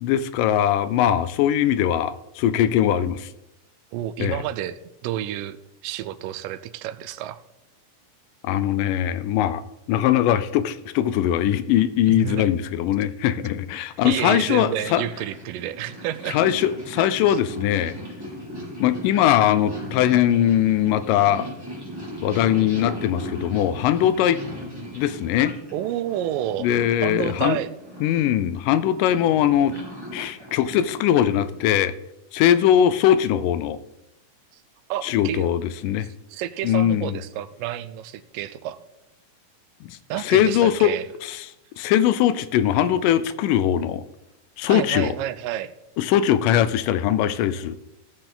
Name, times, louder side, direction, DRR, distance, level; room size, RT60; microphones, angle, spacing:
voice 1, 0.0-3.3 4.2-4.4 8.4-15.0 16.3-18.0 18.8-21.5 22.2-24.4 24.9-25.6 26.6-27.6 28.0-29.8 30.1-31.9 32.3-33.8 35.0-36.1 36.6-37.2 39.9-40.9 41.2-41.5 41.8-44.0 44.6-45.2 46.0-47.8, left 11 dB, 85° left, 14 dB, 2.2 m, -21 dB
voice 2, 3.9-5.6 5.8-7.4 12.1-12.5 14.0-16.4 17.3-17.4 25.7-26.7 27.0-27.7 34.9-35.5 36.3-38.8 40.1-41.1 44.7-45.7, right 12 dB, 90° right, 14 dB, 2.2 m, -29 dB
Purr, 14.2-31.7, equal, 5° right, 3.3 m, -38 dB
15.5 x 6.8 x 3.8 m, 0.86 s
omnidirectional pair, 3.8 m